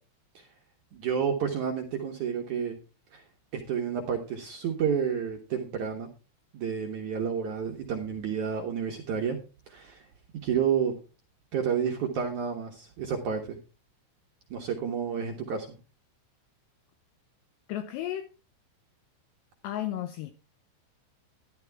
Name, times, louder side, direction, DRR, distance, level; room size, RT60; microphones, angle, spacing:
voice 1, 0.9-2.8 3.1-3.2 3.5-6.1 6.5-9.4 9.7-10.1 10.4-10.9 11.5-13.6 14.5-15.8, right 7 dB, 70° right, 1.9 m, -30 dB
voice 2, 17.7-18.3 19.6-20.3, left 12 dB, 75° left, 2.8 m, -33 dB
12.5 x 12.0 x 3.5 m
omnidirectional pair, 5.4 m